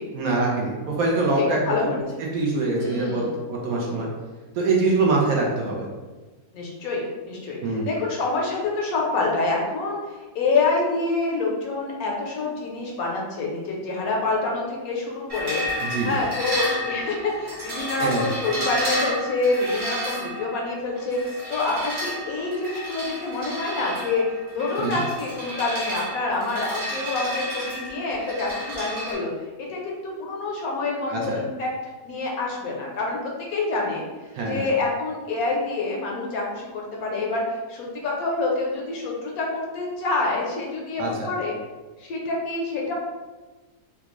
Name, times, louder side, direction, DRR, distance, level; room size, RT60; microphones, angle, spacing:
voice 1, 0.1-1.9 2.2-4.1 4.5-5.9 7.6-7.9 15.8-16.1 18.0-18.3 24.8-25.0 31.1-31.4 34.3-34.6 41.0-41.3, right 3 dB, 70° right, -2 dB, 1.1 m, -24 dB
voice 2, 1.4-2.0 2.8-3.4 6.5-24.2 24.5-29.3 29.6-31.7 32.0-34.0 34.4-41.5 42.0-42.9, left 3 dB, 70° left, -2 dB, 1.1 m, -27 dB
sound 1, 15.3-29.1, equal, 45° right, 1.1 m, -32 dB
3.4 x 2.4 x 3.0 m, 1.2 s
omnidirectional pair, 1.7 m